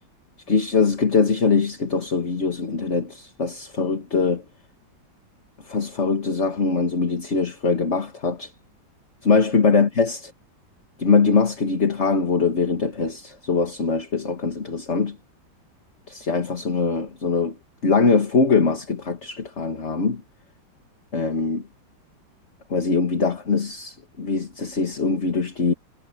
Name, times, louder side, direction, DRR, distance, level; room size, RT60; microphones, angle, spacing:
voice 1, 0.5-4.4 5.6-8.5 9.2-10.2 11.0-15.2 16.1-17.6 17.8-20.2 21.1-21.7 22.7-25.7, left 4 dB, 35° left, 2.0 m, -22 dB
omnidirectional pair, 2.1 m